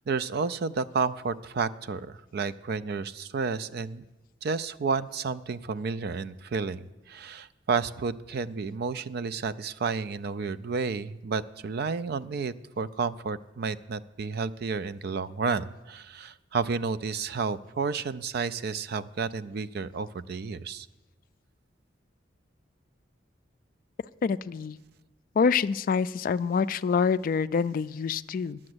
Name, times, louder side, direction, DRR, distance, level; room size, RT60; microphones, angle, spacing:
voice 1, 0.1-4.0 4.4-20.9, right 5 dB, 60° right, 15 dB, 0.4 m, -31 dB
voice 2, 24.2-24.8 25.4-28.6, left 5 dB, 50° left, 15 dB, 0.3 m, -26 dB
10.5 x 7.5 x 7.9 m, 1.1 s
head